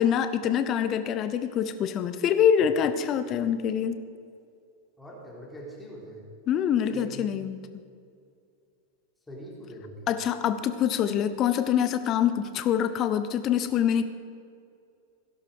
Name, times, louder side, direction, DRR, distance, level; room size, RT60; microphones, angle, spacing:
voice 1, 0.0-4.0 6.5-7.6 10.1-14.0, left 9 dB, 35° left, 11 dB, 0.9 m, -25 dB
voice 2, 5.0-6.3 6.9-7.3 9.3-10.1, right 1 dB, 10° left, -4 dB, 3.5 m, -42 dB
17.0 x 11.0 x 4.9 m, 2.3 s
figure-of-eight pair, 90°, 0 cm